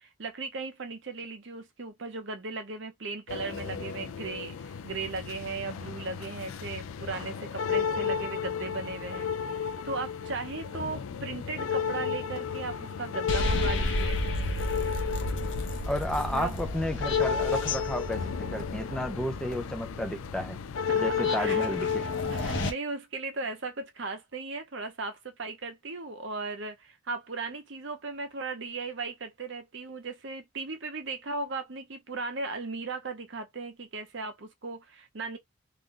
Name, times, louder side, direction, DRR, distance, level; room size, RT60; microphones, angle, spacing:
voice 1, 0.0-9.3 9.6-14.2 16.3-16.5 20.7-21.6 22.3-35.4, right 3 dB, 60° right, 0.7 m, -37 dB
sound 1, 3.3-22.7, left 6 dB, 80° left, 0.4 m, -33 dB
sound 2, 13.3-22.7, left 1 dB, 60° left, 0.7 m, -33 dB
voice 2, 15.9-20.6 21.0-22.1, left 1 dB, 5° left, 0.3 m, -32 dB
2.5 x 2.2 x 3.6 m
head